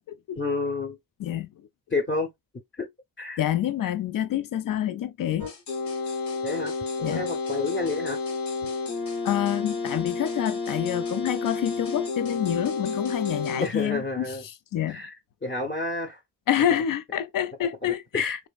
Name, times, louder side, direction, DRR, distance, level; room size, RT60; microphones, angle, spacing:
voice 1, 0.3-1.0 1.9-2.3 2.7-2.9 3.2-3.4 3.8-3.9 6.4-8.2 13.5-14.4 14.9-15.1 15.4-16.2 17.8-18.4, left 3 dB, 30° left, 0.9 m, -30 dB
voice 2, 3.4-5.5 7.0-7.3 9.2-14.3 14.7-15.0 16.5-18.4, left 11 dB, 55° left, 0.5 m, -27 dB
sound 1, 5.4-13.7, left 4 dB, 75° left, 1.0 m, -31 dB
2.9 x 2.6 x 2.3 m
cardioid pair, 55°, 40 cm